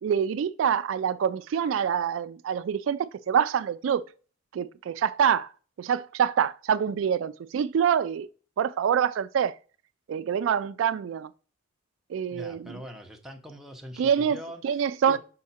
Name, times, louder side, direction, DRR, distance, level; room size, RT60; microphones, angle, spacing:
voice 1, 0.0-4.0 4.5-5.5 5.8-8.3 8.6-9.6 10.1-11.3 12.1-12.8 14.0-14.4 14.6-15.2, right 8 dB, 70° right, 0.3 m, -26 dB
voice 2, 12.3-15.2, equal, ahead, 0.8 m, -43 dB
5.6 x 4.7 x 4.2 m
head